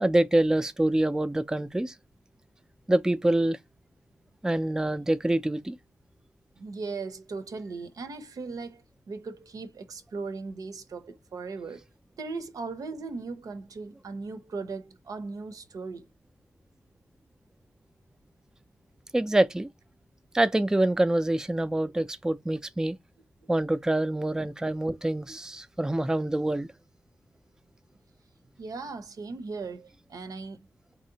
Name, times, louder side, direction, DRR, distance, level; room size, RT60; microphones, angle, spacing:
voice 1, 0.0-1.9 2.9-3.6 4.4-5.8 19.1-19.7 20.3-23.0 23.5-26.7, right 1 dB, 10° right, 0.3 m, -25 dB
voice 2, 6.6-11.8 12.2-16.1 28.6-30.7, right 4 dB, 85° right, 0.7 m, -38 dB
4.1 x 2.7 x 2.7 m
cardioid pair, 65°, 6 cm